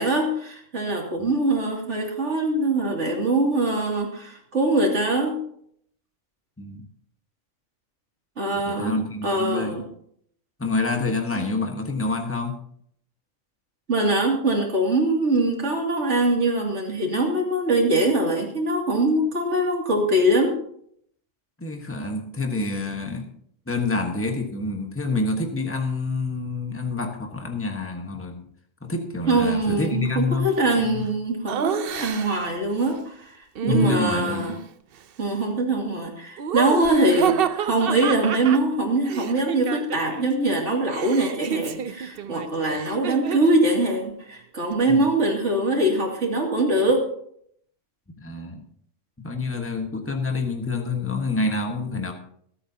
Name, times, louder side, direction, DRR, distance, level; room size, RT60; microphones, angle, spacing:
voice 1, 0.0-5.4 8.4-9.8 11.3-11.5 13.9-20.6 29.3-33.4 33.6-34.5 35.2-47.0, right 2 dB, 80° right, 0 dB, 3.0 m, -23 dB
voice 2, 8.5-9.8 10.6-12.6 21.6-23.3 23.7-28.5 28.8-30.5 30.8-31.0 33.7-34.5 42.7-42.8 44.9-45.0 48.2-48.7 49.2-52.1, left 3 dB, 10° left, 3 dB, 1.4 m, -27 dB
Laughter, 31.5-32.5 33.5-34.6 36.4-40.3 40.5-43.6, right 8 dB, 60° right, 0.8 m, -29 dB
25.0 x 8.6 x 2.9 m, 0.67 s
omnidirectional pair, 1.2 m